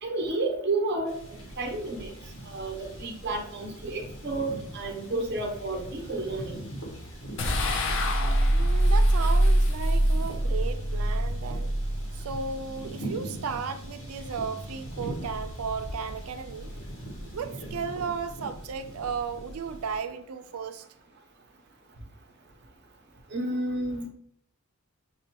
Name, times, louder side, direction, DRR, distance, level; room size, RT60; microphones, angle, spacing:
voice 1, 0.0-1.2 1.6-2.1 2.4-6.6 23.3-24.1, right 2 dB, 50° right, 0.8 m, -31 dB
sound 1, 1.1-20.0, equal, 80° left, 1.4 m, -41 dB
sound 2, 7.4-12.7, right 1 dB, 55° left, 0.5 m, -24 dB
voice 2, 8.5-11.7 12.1-16.7 17.2-20.8, right 6 dB, 80° right, 0.4 m, -35 dB
6.3 x 2.2 x 2.8 m
head